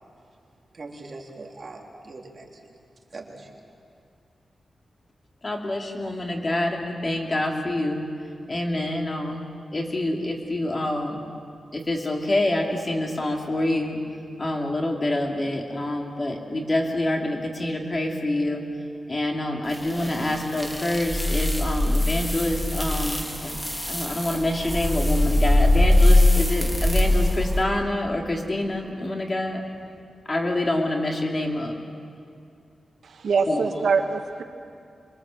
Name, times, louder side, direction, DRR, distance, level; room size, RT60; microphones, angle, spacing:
voice 1, 0.7-2.8 3.1-3.5, right 3 dB, 40° right, 0 dB, 3.4 m, -41 dB
voice 2, 5.4-8.1 8.5-9.4 9.7-11.3 11.7-18.7 19.1-23.6 23.9-29.7 30.2-31.7 33.5-33.7, left 1 dB, 30° left, 1 dB, 3.0 m, -26 dB
sound 1, 19.7-27.6, left 1 dB, 5° left, 1.9 m, -22 dB
voice 3, 33.0-34.4, right 5 dB, 75° right, 5 dB, 1.5 m, -24 dB
26.0 x 23.0 x 7.7 m, 2.4 s
wide cardioid pair, 125°, 0 cm